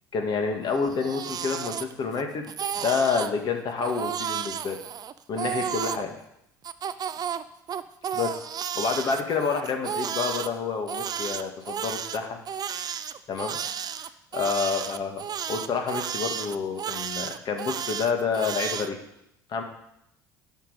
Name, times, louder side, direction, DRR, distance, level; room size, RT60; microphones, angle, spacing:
voice 1, 0.1-4.8 5.3-6.1 8.1-12.4 13.3-13.6 14.3-19.0 19.5-19.6, left 5 dB, 50° left, 4 dB, 2.0 m, -28 dB
Crying sobbing, 0.7-2.2 2.5-3.3 3.8-6.0 6.6-10.5 10.9-18.9, right 8 dB, 45° right, 0.6 m, -32 dB
11.0 x 5.6 x 6.8 m, 0.80 s
hypercardioid pair, 70°, 10 cm